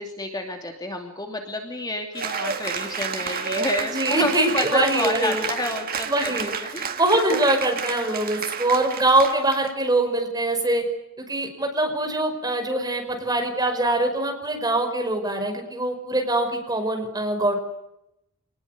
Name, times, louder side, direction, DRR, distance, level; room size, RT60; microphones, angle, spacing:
voice 1, 0.0-7.0 7.3-7.4, left 1 dB, 20° left, 3 dB, 2.8 m, -29 dB
Cheering / Applause, 2.1-9.7, right 6 dB, 45° right, 2.1 m, -31 dB
voice 2, 3.9-5.5 6.1-6.5 7.0-10.8 11.3-17.5, right 2 dB, 20° right, 4 dB, 5.5 m, -23 dB
27.0 x 20.0 x 9.5 m, 0.84 s
head